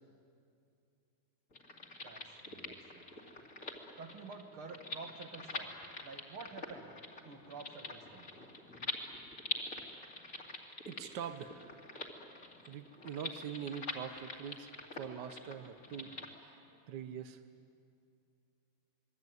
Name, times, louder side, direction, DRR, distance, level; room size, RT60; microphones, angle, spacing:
sound 1, 1.5-16.3, left 2 dB, 35° left, 2.8 m, -45 dB
voice 1, 2.0-3.0 4.0-5.7 6.0-6.9 7.2-8.3 16.0-16.1, right 4 dB, 75° right, 5 dB, 2.7 m, -49 dB
voice 2, 10.8-11.8 12.7-17.4, right 8 dB, 60° right, 8 dB, 1.4 m, -44 dB
27.5 x 22.0 x 9.3 m, 2.5 s
omnidirectional pair, 2.3 m